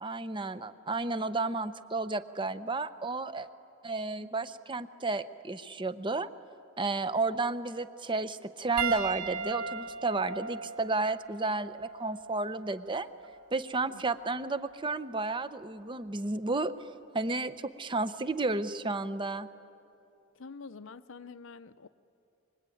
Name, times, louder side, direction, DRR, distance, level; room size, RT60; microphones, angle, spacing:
voice 1, 0.0-3.5 3.8-6.3 6.8-13.1 13.5-16.7 17.1-19.5, right 3 dB, 20° right, 12 dB, 0.7 m, -32 dB
Piano, 8.8-13.4 14.4-14.6 16.5-16.6, right 5 dB, 80° right, 2.5 m, -38 dB
voice 2, 20.3-21.9, left 4 dB, 60° left, 14 dB, 0.7 m, -47 dB
24.5 x 22.5 x 9.2 m, 2.8 s
head